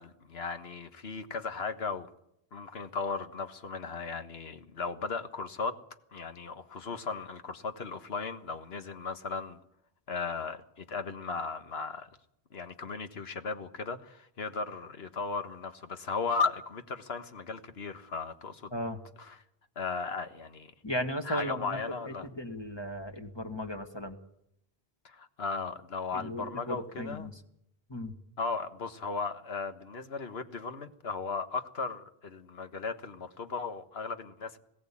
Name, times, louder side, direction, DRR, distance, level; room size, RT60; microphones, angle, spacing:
voice 1, 0.0-2.1 2.5-5.8 6.1-9.6 10.1-12.1 12.5-18.7 19.2-19.3 19.7-20.7 21.2-22.3 25.0-27.3 28.4-34.6, left 4 dB, 75° left, 1.6 m, -36 dB
voice 2, 20.8-21.8 22.1-24.2 26.1-27.4 27.9-28.1, equal, 25° left, 2.0 m, -36 dB
21.5 x 17.0 x 8.6 m
omnidirectional pair, 1.0 m